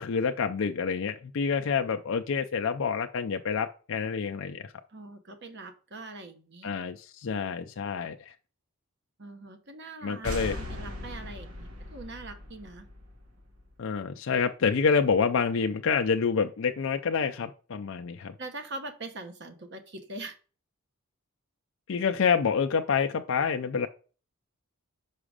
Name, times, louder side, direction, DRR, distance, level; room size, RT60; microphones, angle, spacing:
voice 1, 0.0-4.7 6.6-8.3 10.0-10.6 13.8-18.3 21.9-23.9, left 6 dB, 60° left, 6 dB, 0.4 m, -27 dB
voice 2, 4.9-6.7 9.2-12.9 18.4-20.4, right 2 dB, 50° right, 7 dB, 1.0 m, -42 dB
sound 1, 10.2-13.7, left 1 dB, 70° right, 1.5 m, -39 dB
6.1 x 4.9 x 4.9 m, 0.37 s
head